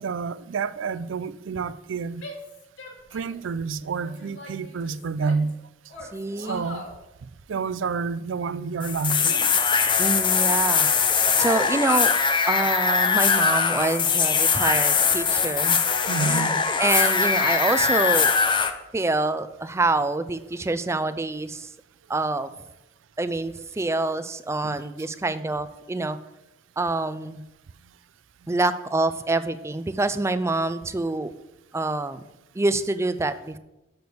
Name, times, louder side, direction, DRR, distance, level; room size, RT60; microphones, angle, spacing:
voice 1, 0.0-2.2 3.1-5.5 6.4-6.9 7.5-9.5 16.1-16.7 24.6-24.8, right 5 dB, 90° right, 0.4 m, -29 dB
Female speech woman speaking / Yell, 2.2-3.5 4.0-5.5 5.9-7.0, left 2 dB, 90° left, 2.2 m, -42 dB
voice 2, 6.1-6.6 10.0-10.9 11.4-12.1 12.5-15.8 16.2-18.3 18.9-21.7 22.1-22.5 23.2-26.2 26.8-27.4 28.5-31.3 31.7-32.2 32.6-33.6, right 2 dB, 15° right, 0.4 m, -26 dB
sound 1, 8.8-18.7, left 5 dB, 25° left, 0.7 m, -21 dB
6.7 x 6.1 x 6.9 m
head